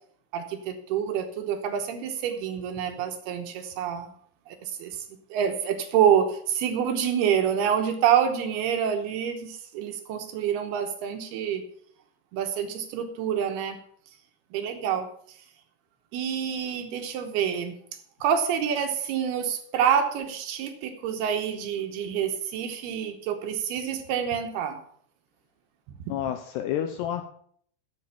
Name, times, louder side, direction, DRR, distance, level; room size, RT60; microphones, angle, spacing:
voice 1, 0.3-4.1 4.5-5.0 5.3-11.6 12.3-13.8 14.5-15.1 16.1-17.7 18.2-24.8, right 8 dB, 75° right, 5 dB, 2.5 m, -27 dB
voice 2, 26.1-27.2, left 10 dB, 85° left, 7 dB, 2.4 m, -29 dB
15.0 x 7.6 x 5.7 m, 0.62 s
omnidirectional pair, 5.6 m